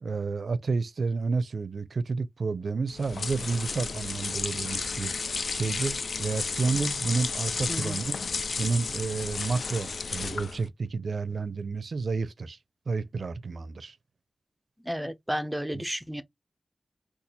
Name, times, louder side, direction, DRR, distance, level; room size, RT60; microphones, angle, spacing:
voice 1, 0.0-5.1 5.5-8.2 8.6-12.6 12.9-14.0 15.7-15.8, right 4 dB, 65° right, 0.4 m, -30 dB
sound 1, 2.9-10.7, left 4 dB, 65° left, 0.3 m, -32 dB
voice 2, 7.7-8.0 14.8-16.2, equal, 5° right, 0.5 m, -32 dB
4.0 x 2.3 x 2.7 m
wide cardioid pair, 110°, 0 cm